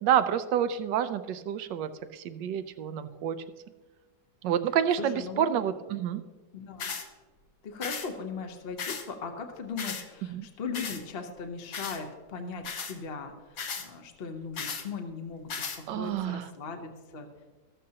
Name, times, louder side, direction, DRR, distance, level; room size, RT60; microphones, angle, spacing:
voice 1, 0.0-3.4 4.4-6.2 10.3-10.5 15.9-16.5, right 9 dB, 80° right, 11 dB, 1.3 m, -28 dB
voice 2, 5.0-5.5 6.5-6.9 7.6-17.3, left 5 dB, 40° left, 4 dB, 1.0 m, -39 dB
sound 1, 6.8-7.1 7.8-8.1 8.8-9.1 9.8-10.0 10.7-11.0 11.7-12.0 12.6-12.9 13.6-13.9 14.6-14.8 15.5-15.8, left 5 dB, 55° left, 1.4 m, -35 dB
14.0 x 13.0 x 2.9 m, 1.3 s
omnidirectional pair, 1.9 m